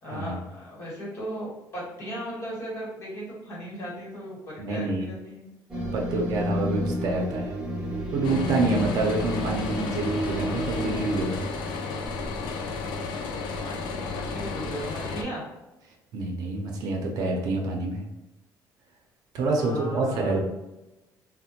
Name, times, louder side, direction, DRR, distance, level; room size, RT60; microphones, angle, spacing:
voice 1, 0.0-5.5 13.6-15.4 19.5-20.4, equal, 35° left, -4 dB, 1.1 m, -37 dB
voice 2, 4.6-5.1 5.9-7.5 8.1-11.4 16.1-18.0 19.3-20.4, right 2 dB, 60° right, 0 dB, 0.6 m, -27 dB
sound 1, 5.7-11.2, equal, 10° right, 0.7 m, -31 dB
sound 2, 8.2-15.2, left 4 dB, 85° left, 0.4 m, -33 dB
3.3 x 2.1 x 2.8 m, 1.0 s
cardioid pair, 175°, 8 cm